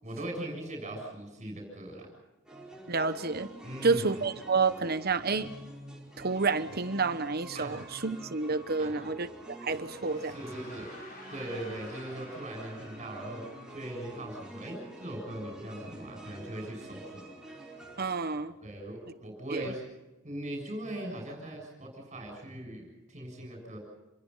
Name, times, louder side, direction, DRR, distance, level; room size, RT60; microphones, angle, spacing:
voice 1, 0.0-2.1 3.6-4.1 7.5-7.8 8.8-9.0 10.2-10.9 11.3-17.3 18.6-19.8 20.2-23.8, right 1 dB, 35° right, 7.3 m, -40 dB
sound 1, 2.4-18.1, right 1 dB, 5° right, 5.1 m, -47 dB
voice 2, 2.9-3.5 3.8-5.5 6.2-10.3 18.0-18.5 19.5-19.7, right 4 dB, 50° right, 1.1 m, -29 dB
sound 2, 9.5-15.4, left 1 dB, 45° left, 7.8 m, -52 dB
28.0 x 22.0 x 5.7 m
head